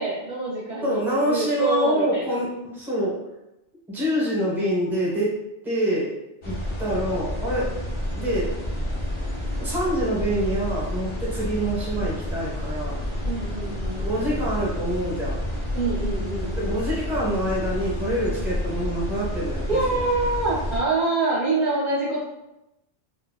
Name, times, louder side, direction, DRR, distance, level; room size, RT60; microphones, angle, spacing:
voice 1, 0.0-1.0 1.3-2.4 13.2-14.5 15.7-16.7 19.7-22.2, right 2 dB, 50° right, -9 dB, 0.7 m, -26 dB
voice 2, 0.8-3.1 3.9-5.3 5.6-6.1 6.4-7.7 8.2-8.5 9.6-13.0 14.0-15.4 16.6-19.6 19.9-20.0, right 1 dB, ahead, -7 dB, 0.8 m, -26 dB
sound 1, 6.4-20.8, left 1 dB, 40° left, 0.4 m, -29 dB
3.8 x 2.1 x 2.2 m, 0.91 s
omnidirectional pair, 1.2 m